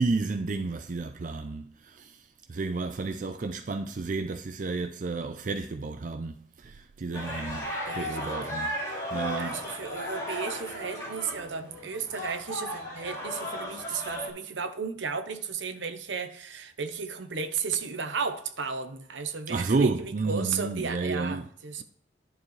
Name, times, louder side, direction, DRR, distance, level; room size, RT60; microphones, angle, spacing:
voice 1, 0.0-2.2 2.5-7.7 7.9-8.7 9.1-9.6 19.5-21.5, right 3 dB, 40° right, 0.4 m, -31 dB
sound 1, 7.1-14.3, equal, 15° left, 2.8 m, -35 dB
voice 2, 7.9-8.4 9.4-21.8, right 5 dB, 70° right, 0.9 m, -34 dB
11.0 x 7.1 x 3.2 m
head